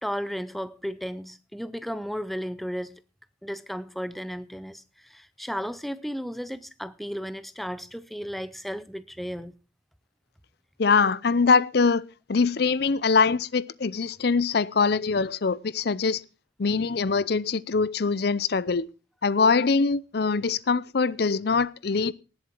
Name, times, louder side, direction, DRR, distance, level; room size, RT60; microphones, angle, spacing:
voice 1, 0.0-3.0 3.4-9.5, equal, ahead, 0.6 m, -34 dB
voice 2, 10.8-12.0 12.3-16.2 16.6-18.9 19.2-22.1, left 4 dB, 55° left, 0.5 m, -23 dB
19.0 x 7.4 x 4.5 m
head